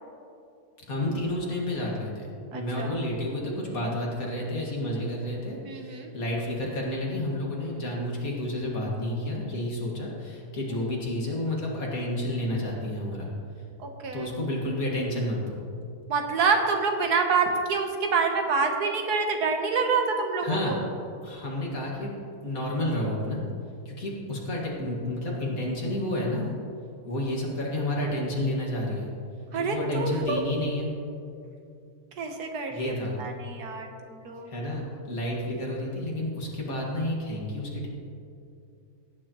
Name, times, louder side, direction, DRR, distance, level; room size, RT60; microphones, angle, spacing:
voice 1, 0.9-13.3 14.1-15.6 20.4-20.8 21.2-22.1 22.4-23.4 23.9-26.6 27.1-29.1 29.6-30.9 32.7-33.2 34.5-37.9, left 1 dB, 60° left, -2 dB, 2.4 m, -30 dB
voice 2, 2.5-2.9 5.6-6.1 13.8-14.3 16.1-20.8 29.5-30.4 32.2-32.9 33.2-34.5, right 4 dB, 80° right, 4 dB, 1.6 m, -27 dB
17.0 x 9.6 x 3.0 m, 2.6 s
omnidirectional pair, 1.7 m